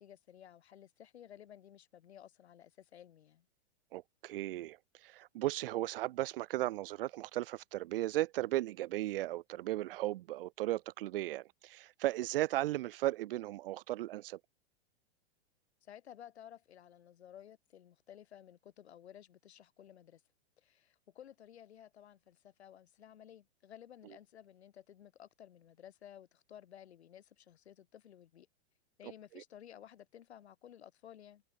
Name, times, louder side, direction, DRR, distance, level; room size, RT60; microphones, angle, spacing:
voice 1, 0.0-3.5 15.8-20.2 20.6-28.5 29.0-31.4, left 10 dB, 85° left, 6.5 m, -55 dB
voice 2, 3.9-4.8 5.0-14.4, right 16 dB, 60° right, 1.0 m, -36 dB
supercardioid pair, 150°, 32 cm